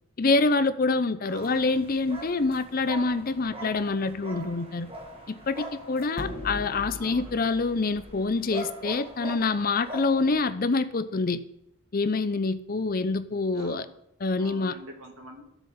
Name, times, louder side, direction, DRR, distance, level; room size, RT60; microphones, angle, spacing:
voice 1, 0.2-4.9 5.3-11.4 11.9-13.9 14.2-14.7, left 3 dB, 40° left, 11 dB, 0.6 m, -26 dB
sound 1, 1.3-10.4, right 1 dB, 25° right, 1.4 m, -42 dB
voice 2, 1.3-1.8 6.9-7.5 13.5-13.9 14.4-15.4, right 1 dB, 70° right, 1 dB, 2.2 m, -45 dB
sound 2, 2.1-2.5 6.2-8.5, left 1 dB, 65° left, 1.3 m, -40 dB
13.0 x 7.0 x 4.3 m, 0.80 s
head